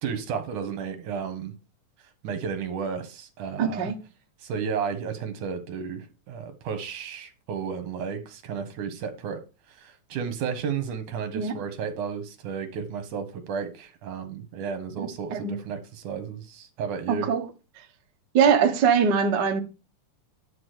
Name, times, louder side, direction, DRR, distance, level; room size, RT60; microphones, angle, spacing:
voice 1, 0.0-1.6 2.2-3.9 4.4-9.4 9.7-17.3, right 6 dB, 70° right, 2.9 m, -33 dB
voice 2, 3.6-4.0 11.3-11.5 15.0-15.5 17.1-17.5 18.3-19.6, right 7 dB, 50° right, 1.4 m, -22 dB
11.0 x 4.7 x 6.7 m
omnidirectional pair, 3.7 m